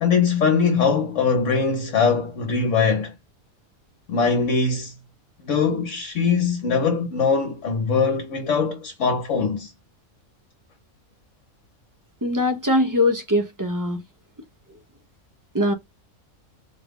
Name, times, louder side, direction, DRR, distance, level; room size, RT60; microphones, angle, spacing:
voice 1, 0.0-3.1 4.1-4.9 5.4-9.7, left 5 dB, 60° left, 1.2 m, -21 dB
voice 2, 12.2-14.0 15.5-15.7, left 1 dB, 25° right, 0.4 m, -21 dB
4.1 x 2.4 x 3.6 m
omnidirectional pair, 1.5 m